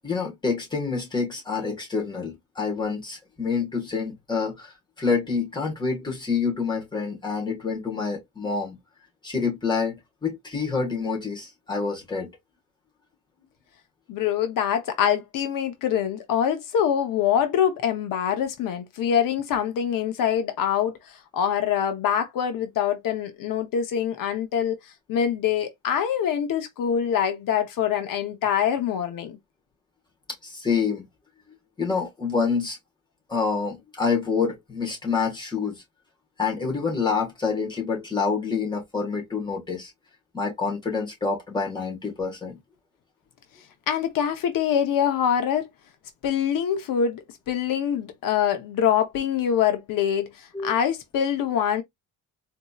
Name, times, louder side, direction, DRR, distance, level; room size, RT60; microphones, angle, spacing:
voice 1, 0.0-8.8 9.2-12.3 30.4-31.0 31.8-32.8 33.3-35.8 36.4-39.9 40.3-42.6 50.5-50.7, left 5 dB, 15° left, 1.4 m, -27 dB
voice 2, 14.1-24.8 25.1-29.4 43.9-45.7 46.2-51.8, left 8 dB, 75° left, 0.8 m, -24 dB
4.1 x 2.7 x 2.3 m
cardioid pair, 165°, 33 cm